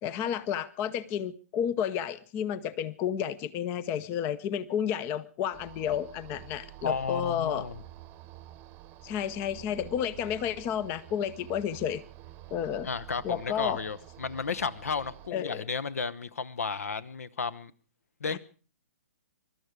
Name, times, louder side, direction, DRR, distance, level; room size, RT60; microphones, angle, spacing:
voice 1, 0.0-7.7 9.0-12.0 12.5-12.9 13.2-13.8 15.3-15.6 18.3-18.4, left 9 dB, 25° left, 0.7 m, -31 dB
sound 1, 5.5-15.3, right 14 dB, 25° right, 1.0 m, -49 dB
voice 2, 6.8-7.8 12.8-17.7 18.2-18.4, left 5 dB, 65° left, 1.0 m, -33 dB
23.5 x 12.5 x 4.8 m
figure-of-eight pair, 120°, 8 cm